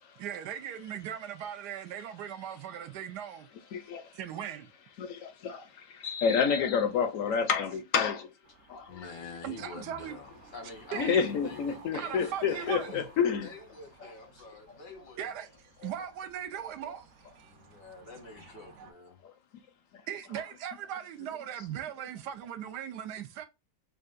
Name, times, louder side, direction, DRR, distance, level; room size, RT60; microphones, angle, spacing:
voice 1, 0.2-3.5 4.1-4.7 9.4-10.2 10.9-11.3 11.9-13.0 15.2-15.5 15.8-17.5 18.8-18.9 20.1-23.4, right 9 dB, 75° right, 1.2 m, -39 dB
voice 2, 3.7-4.0 5.0-5.1 5.4-5.6 6.0-8.2 8.7-8.8 10.9-13.5, left 6 dB, 65° left, 0.8 m, -28 dB
sound 1, 8.4-18.9, right 4 dB, 50° right, 1.2 m, -56 dB
voice 3, 8.9-13.0 13.4-15.5 17.4-19.2, left 4 dB, 90° left, 1.9 m, -47 dB
6.4 x 2.3 x 2.5 m
omnidirectional pair, 1.8 m